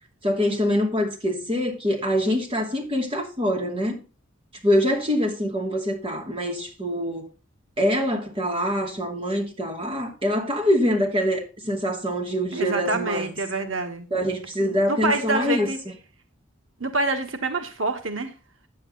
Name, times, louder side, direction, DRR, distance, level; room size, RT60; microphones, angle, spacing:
voice 1, 0.2-4.0 4.6-7.3 7.8-13.3 14.1-15.7, equal, 30° right, 2.7 m, -24 dB
voice 2, 12.5-14.1 14.6-15.8 16.8-18.3, right 3 dB, 85° right, 1.4 m, -27 dB
9.5 x 8.3 x 3.9 m
head